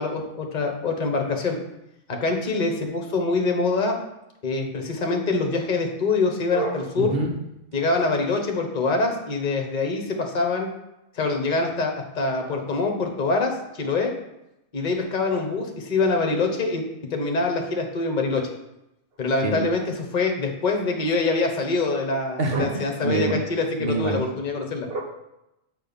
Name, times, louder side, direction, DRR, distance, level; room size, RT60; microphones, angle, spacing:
voice 1, 0.0-1.6 2.1-4.0 4.4-7.1 7.7-10.7 11.1-14.1 14.7-16.8 17.1-18.5 19.2-19.8 20.1-24.9, left 3 dB, 35° left, 3 dB, 1.2 m, -25 dB
voice 2, 6.5-7.3 19.4-19.6 22.4-23.4 23.8-24.2 24.9-25.0, right 2 dB, 45° right, 2 dB, 1.3 m, -26 dB
8.2 x 4.5 x 5.3 m, 0.88 s
omnidirectional pair, 1.4 m